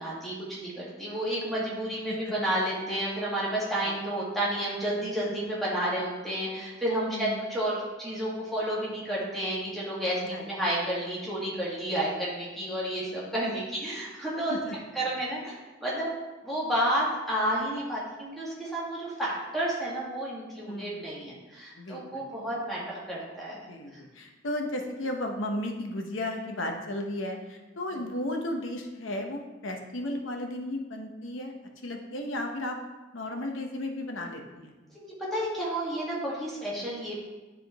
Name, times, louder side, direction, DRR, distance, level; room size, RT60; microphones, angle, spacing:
voice 1, 0.0-14.6 14.9-16.1 16.4-23.6 23.9-24.0 27.9-28.0 34.9-37.1, right 1 dB, ahead, -7 dB, 1.8 m, -31 dB
voice 2, 7.1-7.4 10.2-10.5 13.5-13.6 14.5-14.8 20.7-21.4 21.8-22.2 23.7-31.5 31.8-32.8 33.1-34.7, left 1 dB, 80° left, 4 dB, 0.8 m, -34 dB
9.8 x 3.7 x 3.5 m, 1.2 s
head